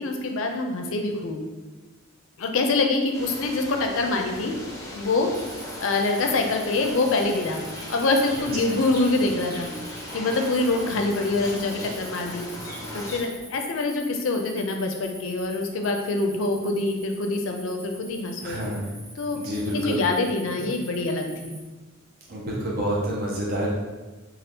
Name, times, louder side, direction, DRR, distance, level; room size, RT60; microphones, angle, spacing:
voice 1, 0.0-1.4 2.4-4.5 4.9-5.3 5.8-7.6 7.9-9.7 10.1-12.4 12.9-18.6 19.2-19.4 19.7-21.6, left 3 dB, 75° left, 3 dB, 0.4 m, -25 dB
sound 1, 3.1-13.2, left 1 dB, 15° left, 0.6 m, -38 dB
Cricket, 5.3-21.6, right 1 dB, 75° right, 1.1 m, -45 dB
voice 2, 18.4-18.9 19.3-20.0 20.6-20.7 22.3-23.7, right 1 dB, 50° right, -5 dB, 0.6 m, -28 dB
2.7 x 2.3 x 3.4 m, 1.2 s
head